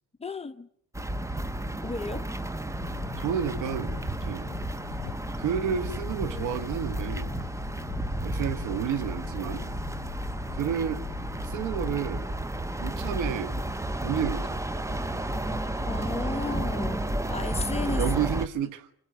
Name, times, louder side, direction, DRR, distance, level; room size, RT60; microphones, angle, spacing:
voice 1, 0.2-0.7 1.8-2.3 15.9-17.0 17.3-18.0, left 3 dB, 20° left, 1.0 m, -34 dB
sound 1, 0.9-18.5, right 1 dB, 10° right, 0.8 m, -32 dB
sound 2, 2.8-12.0, left 16 dB, 80° left, 0.8 m, -42 dB
voice 2, 3.2-4.5 5.4-7.4 8.2-9.7 10.5-11.1 11.4-12.2 12.8-13.5 14.0-14.5 17.9-18.9, right 8 dB, 90° right, 1.2 m, -30 dB
26.5 x 26.5 x 5.3 m
cardioid pair, 90°, 29 cm